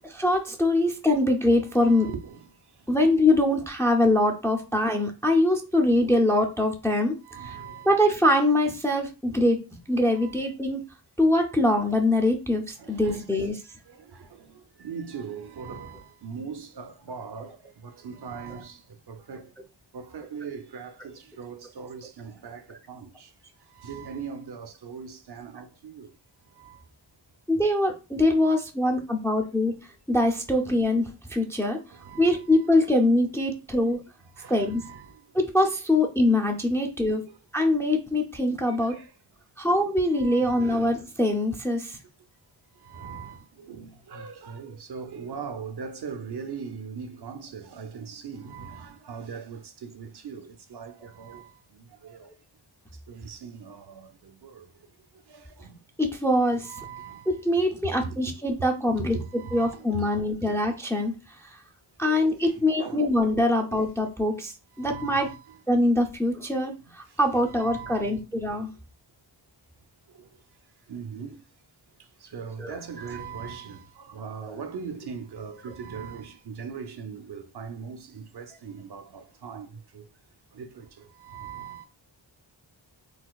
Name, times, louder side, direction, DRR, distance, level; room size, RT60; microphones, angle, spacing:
voice 1, 0.1-2.1 2.9-7.2 7.9-9.6 9.9-10.8 11.2-13.6 27.5-29.7 30.1-31.8 32.2-34.0 34.5-34.8 35.3-37.2 37.5-38.9 39.6-42.0 56.0-56.7 57.3-59.2 59.5-61.6 62.0-65.3 65.7-68.7 72.6-72.7 74.5-74.6, left 1 dB, 5° left, 0.4 m, -23 dB
voice 2, 1.7-2.5 7.2-8.0 10.1-10.4 12.8-13.2 13.9-18.8 19.1-19.5 19.9-23.3 23.7-26.1 26.6-26.8 31.9-32.9 34.4-35.2 38.7-39.1 40.1-40.8 42.8-52.3 53.1-54.7 55.3-55.7 56.6-57.3 58.0-58.2 58.8-60.6 62.0-62.5 62.8-63.1 63.7-63.8 64.8-65.6 67.5-68.1 70.9-71.4 72.2-80.1 80.5-81.9, right 6 dB, 60° right, 0.5 m, -40 dB
4.0 x 2.3 x 2.3 m
wide cardioid pair, 95°, 46 cm